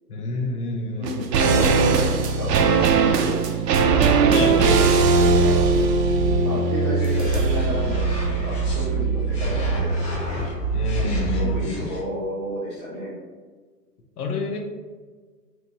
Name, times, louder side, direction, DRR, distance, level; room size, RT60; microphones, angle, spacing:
voice 1, 0.1-1.5 4.3-4.7 10.7-11.8 14.2-14.6, left 3 dB, 65° left, 2 dB, 0.7 m, -28 dB
voice 2, 0.9-3.6 3.9-4.7 5.2-5.6 6.4-9.9 10.9-13.2, equal, 20° left, -8 dB, 0.3 m, -32 dB
sound 1, 1.0-10.4 10.7-10.8, right 4 dB, 75° right, 0.5 m, -21 dB
sound 2, 1.3-11.7, right 7 dB, 10° right, 0.9 m, -27 dB
sound 3, 6.9-8.8 9.3-12.0, left 3 dB, 40° left, 1.2 m, -32 dB
3.2 x 2.9 x 2.7 m, 1.5 s
figure-of-eight pair, 115°, 49 cm